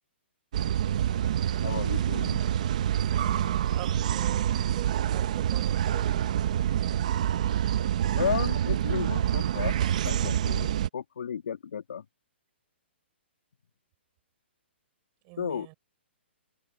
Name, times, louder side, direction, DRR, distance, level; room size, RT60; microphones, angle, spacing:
sound 1, 0.5-10.9, right 10 dB, 35° right, 0.9 m, -27 dB
voice 1, 1.6-2.4 8.1-9.8 10.0-12.0 15.4-15.7, left 7 dB, 65° left, 3.0 m, -33 dB
voice 2, 3.7-6.3 15.2-15.7, right 33 dB, 20° right, 6.8 m, -44 dB
hypercardioid pair, 175°, 6 cm